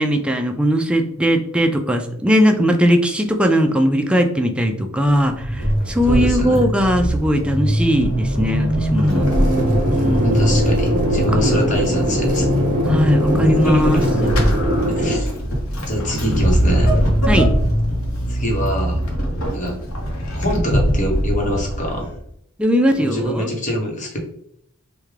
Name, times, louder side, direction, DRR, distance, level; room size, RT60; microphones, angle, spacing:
voice 1, 0.0-9.3 9.9-10.4 11.3-11.9 12.8-14.3 17.3-17.5 22.6-23.5, equal, 5° right, 4 dB, 0.3 m, -19 dB
Vehicle / Accelerating revving vroom / Squeak, 5.1-22.3, equal, 70° left, 0.8 m, -21 dB
voice 2, 6.1-6.6 10.2-12.5 13.4-14.0 14.9-15.3 15.9-16.9 18.3-19.0 19.5-19.8 20.3-22.1 23.0-24.2, equal, 35° left, 0 dB, 0.9 m, -24 dB
sound 1, 9.1-15.2, equal, 40° right, 0.9 m, -22 dB
3.5 x 2.2 x 3.1 m, 0.73 s
head